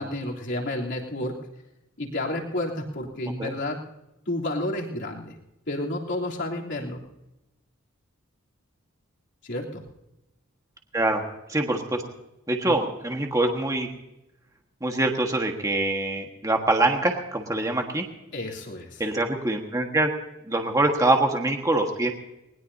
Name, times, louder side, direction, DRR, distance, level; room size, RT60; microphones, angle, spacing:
voice 1, 0.0-1.4 2.0-3.8 4.3-5.4 5.7-7.0 9.4-9.8 12.6-12.8 18.3-19.0, left 1 dB, 60° left, -2 dB, 3.3 m, -30 dB
voice 2, 10.9-11.2 11.5-12.0 12.5-13.9 14.8-18.1 19.0-20.1 20.4-22.1, right 2 dB, 15° right, 2 dB, 1.5 m, -24 dB
21.0 x 20.0 x 2.8 m, 0.94 s
head